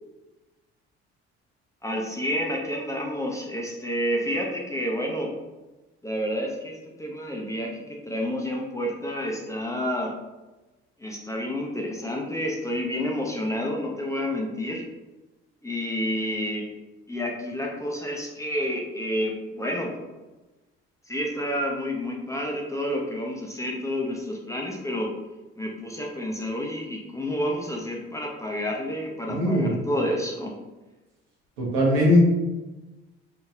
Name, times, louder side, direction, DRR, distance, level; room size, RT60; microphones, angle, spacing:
voice 1, 1.8-5.3 6.0-10.1 11.0-14.8 15.6-16.7 17.1-20.1 21.1-25.1 25.6-30.6, equal, 10° left, -1 dB, 0.6 m, -29 dB
voice 2, 29.3-29.7 31.6-32.2, left 1 dB, 75° right, -4 dB, 1.1 m, -20 dB
2.8 x 2.8 x 2.3 m, 1.1 s
hypercardioid pair, 55°, 31 cm